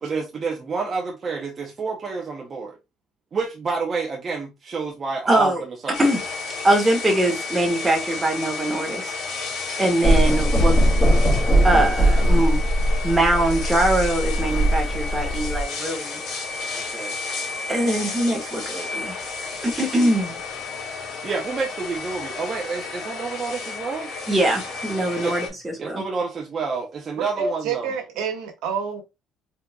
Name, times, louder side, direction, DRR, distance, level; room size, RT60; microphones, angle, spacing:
voice 1, 0.0-2.8 3.3-5.9 16.7-17.2 21.2-24.1 25.2-25.4 25.8-27.9, right 4 dB, 25° right, 0.8 m, -29 dB
voice 2, 5.3-5.6 6.0-6.2 6.6-9.1 9.8-10.8 11.6-12.6 13.0-16.2 17.7-19.1 19.6-20.3 24.3-26.0, right 1 dB, 10° right, 1.4 m, -22 dB
sound 1, 5.9-25.5, left 4 dB, 60° left, 2.2 m, -32 dB
sound 2, 10.0-15.6, right 1 dB, 15° left, 2.1 m, -20 dB
voice 3, 27.2-29.0, right 6 dB, 85° right, 1.4 m, -28 dB
4.3 x 3.9 x 2.3 m
cardioid pair, 170°, 0 cm